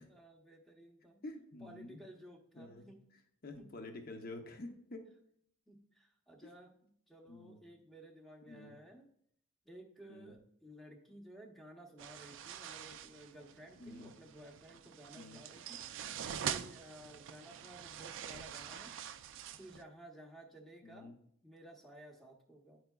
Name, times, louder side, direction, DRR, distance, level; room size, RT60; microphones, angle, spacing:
voice 1, 0.1-1.2 1.6-3.0 3.5-3.7 5.7-9.1 9.6-16.1 16.4-18.9 19.6-21.1 21.4-22.8, right 1 dB, ahead, 1 dB, 0.8 m, -55 dB
voice 2, 1.2-2.0 2.6-2.9 3.4-5.1 7.3-7.6 8.4-8.8 10.1-10.3 13.8-14.1 15.1-15.4 20.8-21.1, left 2 dB, 45° left, 5 dB, 0.7 m, -48 dB
sound 1, 12.0-19.8, right 9 dB, 60° right, 0.3 m, -45 dB
10.0 x 4.5 x 2.2 m, 0.69 s
head